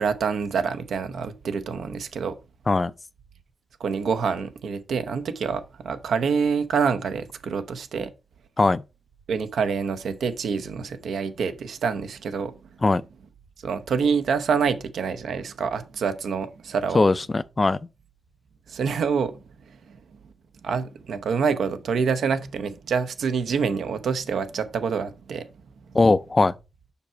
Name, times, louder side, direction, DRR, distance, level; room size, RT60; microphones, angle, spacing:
voice 1, 0.0-2.4 3.8-8.1 9.3-12.5 13.6-17.0 18.7-19.4 19.7-20.0 20.6-25.5, right 6 dB, 90° right, 0.9 m, -26 dB
voice 2, 16.9-17.8 25.9-26.5, left 3 dB, 25° left, 0.3 m, -20 dB
7.0 x 5.7 x 4.4 m
wide cardioid pair, 140°, 0 cm